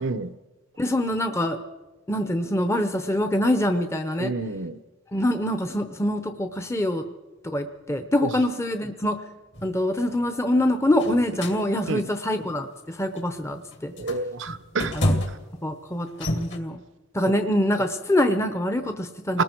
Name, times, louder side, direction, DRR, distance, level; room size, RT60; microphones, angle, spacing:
voice 1, 0.0-0.3 4.2-4.7 11.9-12.0 14.0-14.9 19.3-19.4, right 3 dB, 65° right, 12 dB, 0.7 m, -28 dB
voice 2, 0.8-1.6 2.1-4.3 5.1-7.0 7.4-9.2 9.6-13.9 14.9-15.1 15.6-16.1 16.4-16.8 17.1-19.4, left 1 dB, 15° left, 7 dB, 0.8 m, -24 dB
sound 1, 9.5-9.7 11.0-11.6 12.2-12.5 13.2-13.3 13.7-15.6 16.1-16.6, left 1 dB, 60° left, 2.5 m, -28 dB
29.5 x 20.0 x 4.6 m, 1.2 s
head